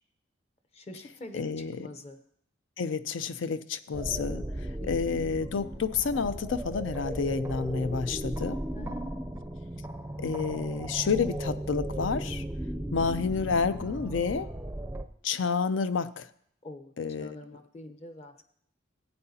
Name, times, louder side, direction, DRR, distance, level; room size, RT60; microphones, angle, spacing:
voice 1, 0.7-1.4 1.8-2.2 4.8-4.9 8.7-9.4 16.6-16.9 17.2-18.4, left 1 dB, 35° left, 8 dB, 0.7 m, -44 dB
voice 2, 1.3-1.9 2.8-4.5 4.9-8.6 10.2-12.4 12.9-14.5 15.2-16.3 17.0-17.4, left 5 dB, 75° left, 13 dB, 0.5 m, -29 dB
sound 1, 3.9-15.0, right 1 dB, 10° right, 0.5 m, -36 dB
15.5 x 8.8 x 2.8 m, 0.67 s
head